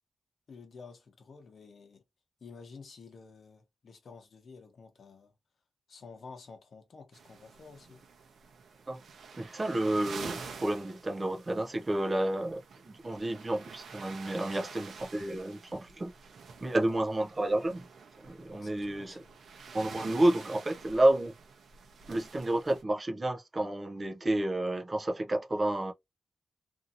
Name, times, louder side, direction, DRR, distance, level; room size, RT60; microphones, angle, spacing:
voice 1, 0.5-2.0 2.4-5.4 5.9-8.0 14.4-14.7 16.6-16.8 18.5-19.4, left 4 dB, 55° left, 0.9 m, -51 dB
sound 1, 7.1-22.8, right 5 dB, 80° right, 0.7 m, -48 dB
voice 2, 9.4-16.1 16.6-17.8 18.2-19.2 19.7-21.4 22.1-25.9, right 1 dB, 25° right, 0.5 m, -30 dB
2.7 x 2.7 x 2.5 m
wide cardioid pair, 165°, 0 cm